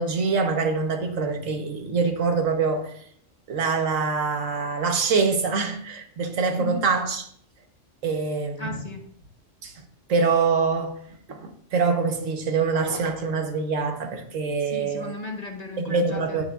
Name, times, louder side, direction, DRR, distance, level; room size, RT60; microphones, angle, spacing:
voice 1, 0.0-2.9 3.5-7.2 8.0-8.7 9.6-9.7 10.1-10.9 11.3-15.1 15.8-16.4, right 4 dB, 85° right, 1.5 m, -24 dB
voice 2, 8.6-9.2 14.6-16.4, left 3 dB, 35° left, 1.2 m, -35 dB
11.0 x 9.4 x 2.4 m
omnidirectional pair, 1.3 m